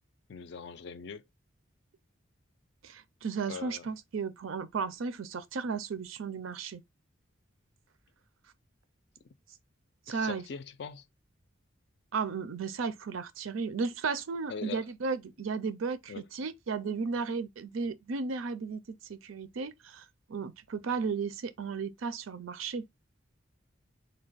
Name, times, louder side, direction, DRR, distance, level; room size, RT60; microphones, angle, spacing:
voice 1, 0.3-1.2 3.5-3.9 10.1-11.0 14.5-14.9 16.1-16.2, left 5 dB, 55° left, 0.4 m, -41 dB
voice 2, 2.8-6.8 10.1-10.4 12.1-20.0 20.3-22.9, right 5 dB, 85° right, 0.5 m, -34 dB
3.4 x 2.2 x 3.9 m
head